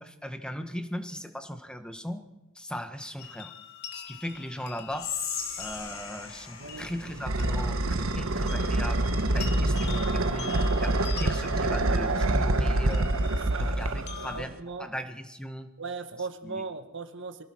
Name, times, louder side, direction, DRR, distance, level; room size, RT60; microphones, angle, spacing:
voice 1, 0.0-2.2 2.6-3.5 3.9-5.1 5.6-9.0 9.3-10.5 10.8-10.9 11.2-13.1 13.6-14.5 14.8-15.7 16.4-16.6, equal, 5° left, 7 dB, 1.6 m, -38 dB
sound 1, 3.2-14.4, left 8 dB, 55° left, 2.8 m, -45 dB
Whispering, 4.9-8.2, left 7 dB, 85° left, 5.4 m, -38 dB
voice 2, 6.6-6.9 10.0-10.1 13.3-13.8 14.3-14.9 15.8-17.4, right 4 dB, 60° right, 8 dB, 1.8 m, -38 dB
sound 2, 6.6-14.6, right 2 dB, 85° right, 1.4 m, -26 dB
24.0 x 17.5 x 6.2 m, 0.97 s
head